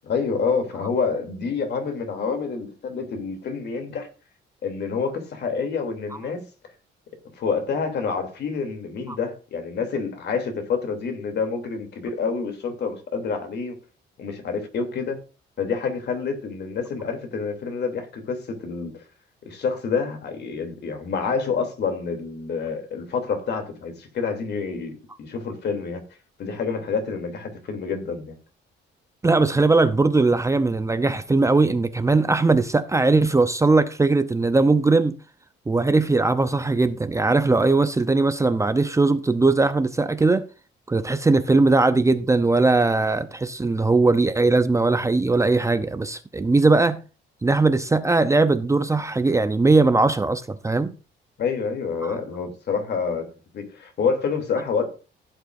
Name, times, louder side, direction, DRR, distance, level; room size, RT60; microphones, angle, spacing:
voice 1, 0.0-4.1 4.6-6.4 7.4-13.8 14.2-15.2 15.6-19.0 19.5-26.0 26.4-28.3 51.4-53.3 53.5-54.9, left 5 dB, 60° left, 3.0 m, -27 dB
voice 2, 29.2-35.2 35.7-40.5 40.9-47.0 47.4-50.9 52.0-52.2, right 3 dB, 15° right, 0.7 m, -19 dB
15.5 x 8.1 x 2.6 m
cardioid pair, 135°, 20 cm